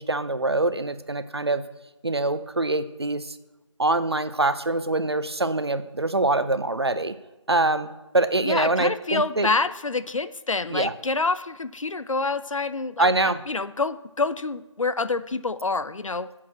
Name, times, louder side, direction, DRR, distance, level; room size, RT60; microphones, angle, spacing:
voice 1, 0.0-1.6 2.0-3.4 3.8-7.1 7.5-9.5 10.7-10.9 13.0-13.4, right 2 dB, 55° right, 13 dB, 0.6 m, -24 dB
voice 2, 8.4-13.1 13.5-16.3, left 3 dB, 80° left, 14 dB, 0.6 m, -27 dB
7.5 x 6.3 x 7.3 m, 1.0 s
figure-of-eight pair, 175°, 16 cm